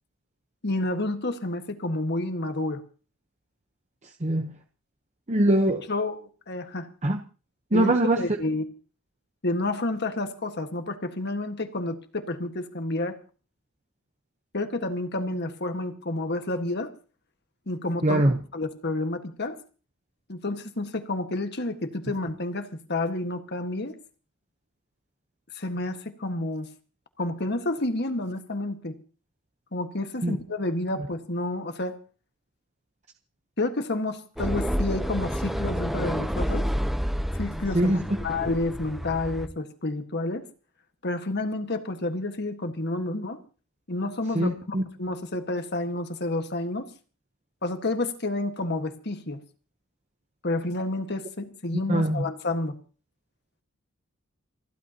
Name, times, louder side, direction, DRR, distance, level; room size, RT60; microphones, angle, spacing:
voice 1, 0.6-2.8 5.9-6.9 7.7-8.6 9.4-13.1 14.5-16.9 17.7-18.2 18.5-19.6 20.3-24.0 25.5-26.7 27.2-28.9 29.7-32.0 33.6-36.7 37.4-40.4 41.0-43.4 43.9-46.9 47.6-49.4 50.4-52.7, left 2 dB, 50° left, 7 dB, 1.6 m, -30 dB
voice 2, 4.2-4.5 5.3-5.8 7.0-7.2 7.7-8.2 18.0-18.4 30.2-30.4 37.7-38.0 44.3-44.8 51.9-52.2, right 1 dB, 35° right, 5 dB, 0.9 m, -22 dB
sound 1, 34.4-39.5, equal, ahead, 0.7 m, -29 dB
29.0 x 11.5 x 2.9 m, 0.38 s
head